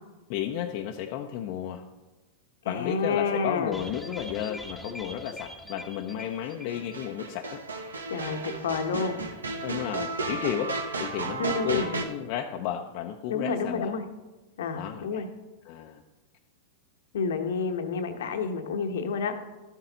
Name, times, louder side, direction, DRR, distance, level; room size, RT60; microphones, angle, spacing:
voice 1, 0.3-1.8 2.6-7.6 9.6-13.9 14.7-15.2 15.6-16.0, left 10 dB, 55° left, 3 dB, 0.6 m, -33 dB
voice 2, 2.7-3.8 8.1-9.2 11.4-11.9 13.3-14.0 14.6-15.3 17.1-19.3, left 5 dB, 75° left, 7 dB, 1.0 m, -29 dB
sound 1, 3.7-7.2 7.4-7.5 7.8-7.9, equal, 5° right, 1.3 m, -43 dB
sound 2, 6.4-12.0, right 3 dB, 90° right, 0.9 m, -33 dB
12.0 x 7.4 x 4.0 m, 1.1 s
hypercardioid pair, 100°, 0 cm